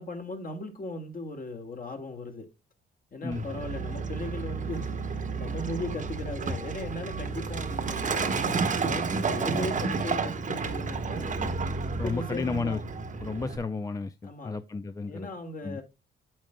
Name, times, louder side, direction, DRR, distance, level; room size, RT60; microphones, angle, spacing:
voice 1, 0.0-2.5 3.1-11.3 12.0-12.8 14.2-14.6 15.1-15.8, left 2 dB, 45° left, 2.1 m, -38 dB
Truck, 3.3-13.6, right 4 dB, 40° right, 1.2 m, -31 dB
voice 2, 12.0-12.8 13.2-15.3 15.6-15.8, left 4 dB, 15° left, 0.5 m, -33 dB
8.6 x 7.8 x 2.2 m
cardioid pair, 90°, 20 cm